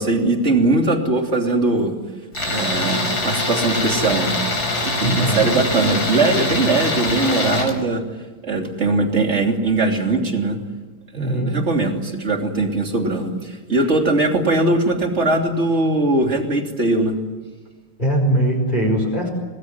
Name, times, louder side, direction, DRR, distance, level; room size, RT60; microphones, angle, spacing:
voice 1, 0.0-1.9 2.5-4.4 4.8-8.0 8.4-10.6 11.1-17.1, right 2 dB, 30° right, 2 dB, 3.3 m, -20 dB
Tools, 2.3-7.7, left 2 dB, 45° left, 5.0 m, -23 dB
voice 2, 5.0-5.5 11.1-11.6 18.0-19.3, right 1 dB, 20° left, -1 dB, 5.1 m, -20 dB
26.0 x 19.5 x 9.7 m, 1.3 s
omnidirectional pair, 2.3 m